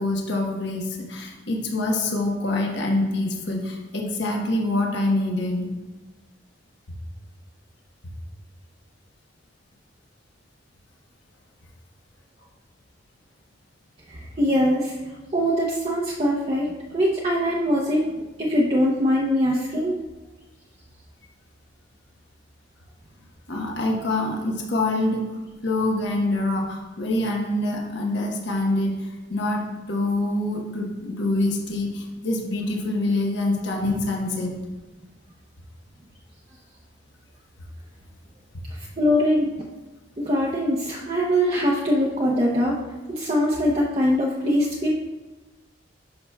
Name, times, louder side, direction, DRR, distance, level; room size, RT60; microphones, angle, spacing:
voice 1, 0.0-5.7 23.5-25.3 25.6-34.5, left 2 dB, 65° left, 0 dB, 1.2 m, -25 dB
voice 2, 14.1-18.0 18.4-19.9 38.7-39.5 40.2-42.8 43.1-44.9, equal, 35° right, -4 dB, 0.7 m, -22 dB
11.0 x 5.7 x 2.3 m, 1.2 s
head